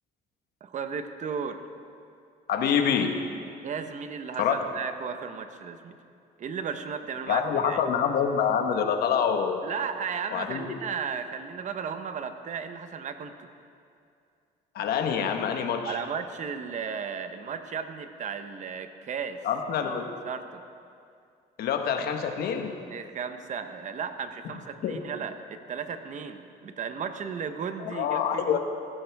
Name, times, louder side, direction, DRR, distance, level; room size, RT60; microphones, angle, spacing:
voice 1, 0.6-1.6 3.6-6.0 6.4-7.8 9.6-13.5 15.8-19.4 19.8-19.9 20.2-20.6 22.9-28.6, right 6 dB, 45° right, 8 dB, 1.0 m, -35 dB
voice 2, 2.5-3.2 4.4-4.6 7.3-9.6 10.3-10.8 14.7-16.0 19.4-20.1 21.6-22.7 24.8-25.0 27.8-28.6, left 7 dB, 65° left, 5 dB, 1.3 m, -26 dB
16.5 x 14.5 x 3.5 m, 2.4 s
cardioid pair, 110°, 17 cm